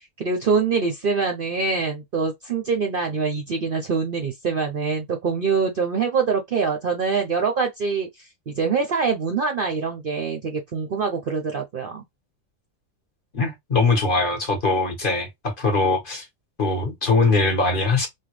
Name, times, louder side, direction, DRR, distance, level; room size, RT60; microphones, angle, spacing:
voice 1, 0.2-12.0, right 5 dB, 55° right, 0.7 m, -24 dB
voice 2, 13.3-16.3 16.6-18.1, left 3 dB, 40° left, 1.3 m, -21 dB
3.7 x 2.2 x 3.1 m
omnidirectional pair, 1.4 m